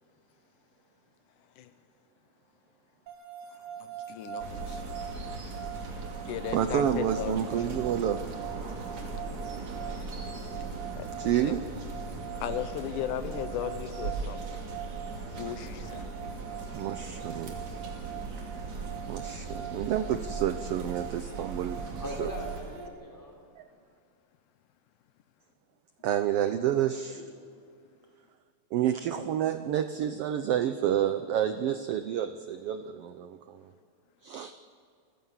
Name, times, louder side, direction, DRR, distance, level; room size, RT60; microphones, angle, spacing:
sound 1, 3.1-22.9, right 9 dB, 45° right, 2.3 m, -43 dB
voice 1, 3.8-4.8 6.3-7.6 11.0-11.6 12.4-14.6 15.4-16.1, left 10 dB, 90° left, 10 dB, 2.6 m, -36 dB
sound 2, 4.4-22.6, right 3 dB, 65° right, 3.8 m, -39 dB
voice 2, 6.5-8.2 11.2-11.6 16.7-17.6 18.5-18.6 19.1-22.3 23.6-23.7 26.0-27.2 28.7-33.7 34.2-34.5, right 10 dB, 85° right, 10 dB, 1.3 m, -29 dB
voice 3, 22.0-23.4 27.1-27.3, left 1 dB, 5° left, 1 dB, 3.5 m, -40 dB
28.5 x 15.5 x 7.3 m, 2.3 s
omnidirectional pair, 3.5 m